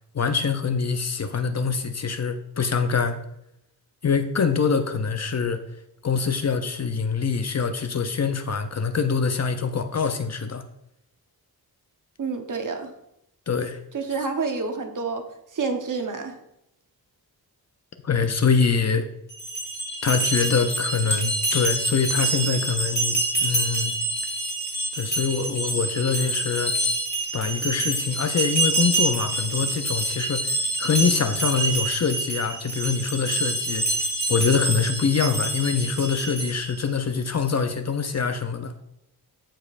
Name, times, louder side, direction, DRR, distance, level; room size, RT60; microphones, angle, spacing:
voice 1, 0.1-3.2 4.0-5.6 6.0-10.6 13.5-13.8 18.0-19.1 20.0-23.9 25.0-26.7 27.3-33.8 34.3-38.7, left 5 dB, 45° left, 8 dB, 0.6 m, -24 dB
voice 2, 12.2-12.9 13.9-15.2 15.5-16.4, right 4 dB, 55° right, 5 dB, 1.0 m, -28 dB
sound 1, 19.3-36.7, right 2 dB, 25° left, 2.0 m, -26 dB
14.5 x 5.2 x 2.5 m, 0.80 s
wide cardioid pair, 165°, 38 cm